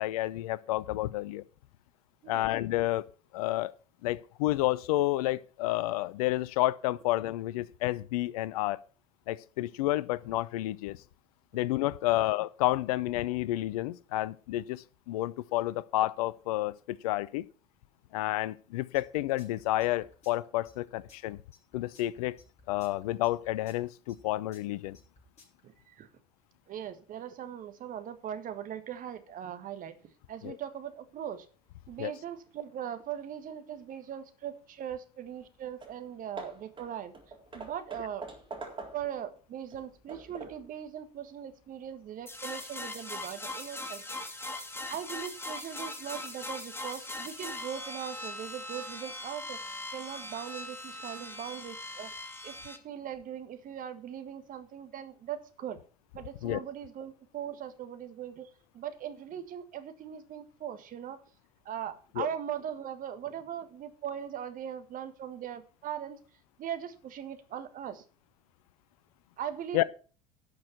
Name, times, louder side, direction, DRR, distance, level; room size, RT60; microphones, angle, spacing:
voice 1, 0.0-1.4 2.3-3.1 3.3-3.7 4.0-8.8 9.3-11.0 11.5-17.4 18.1-21.4 21.7-22.4 22.7-25.0 30.4-30.6 32.0-32.1 56.4-56.6 62.2-62.3 69.7-69.8, left 16 dB, 65° left, 0.6 m, -30 dB
sound 1, 18.9-25.6, left 3 dB, 35° left, 5.3 m, -58 dB
voice 2, 25.6-26.1 26.7-29.9 30.3-31.5 31.9-37.1 37.5-38.3 38.9-44.2 44.5-44.6 44.9-49.6 49.9-52.1 52.4-55.8 56.1-58.5 58.7-61.2 61.6-66.2 66.6-68.0 69.4-69.8, right 9 dB, 40° right, 1.5 m, -40 dB
Hammer / Wood, 35.4-35.5 35.8-36.0 36.4-39.2 39.7-40.7, right 3 dB, 25° right, 3.8 m, -45 dB
sound 2, 42.3-52.8, left 1 dB, 10° left, 2.0 m, -40 dB
11.5 x 6.4 x 5.9 m
figure-of-eight pair, 70°, 20 cm